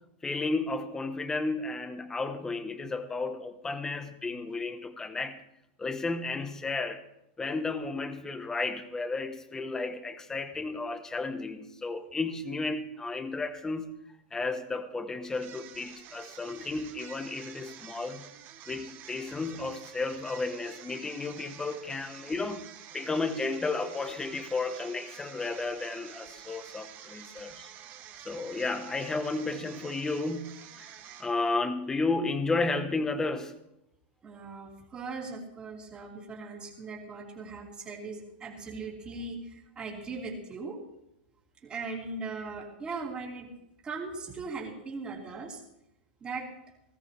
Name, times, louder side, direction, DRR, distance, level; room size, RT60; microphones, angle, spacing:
voice 1, 0.2-5.4 5.8-7.0 7.4-13.9 14.3-18.3 18.7-22.6 22.9-27.7 28.2-33.6, left 3 dB, 10° left, 9 dB, 1.2 m, -33 dB
sound 1, 15.3-31.6, right 10 dB, 35° right, 1.5 m, -49 dB
voice 2, 34.2-40.8 41.6-43.5 43.8-45.6 46.2-46.5, right 4 dB, 15° right, -2 dB, 3.4 m, -39 dB
19.5 x 16.5 x 3.4 m, 0.83 s
supercardioid pair, 155°, 6 cm